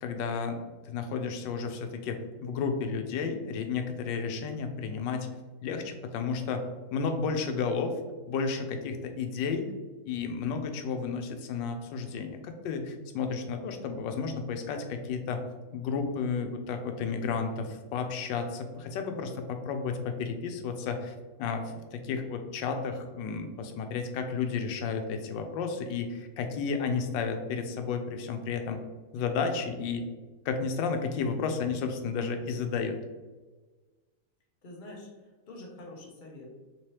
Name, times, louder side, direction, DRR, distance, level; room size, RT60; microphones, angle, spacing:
voice 1, 0.0-5.3 5.6-6.6 6.9-8.0 8.3-9.7 10.1-15.4 15.7-28.8 29.1-30.1 30.4-33.0, left 5 dB, 90° left, 6 dB, 1.3 m, -32 dB
voice 2, 34.6-36.5, left 2 dB, 65° left, -1 dB, 0.4 m, -46 dB
3.6 x 2.8 x 3.1 m, 1.3 s
omnidirectional pair, 1.9 m